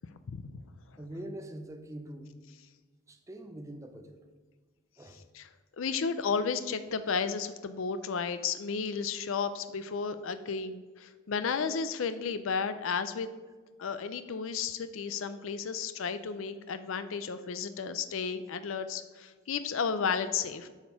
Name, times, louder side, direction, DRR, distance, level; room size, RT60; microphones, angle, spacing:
voice 1, 0.3-0.6 5.3-5.5 5.8-13.3 13.8-20.7, left 5 dB, 65° left, 11 dB, 0.5 m, -33 dB
voice 2, 1.0-2.3 3.1-4.2 5.0-5.2, right 1 dB, 15° right, 5 dB, 0.6 m, -43 dB
7.9 x 5.1 x 5.2 m, 1.4 s
head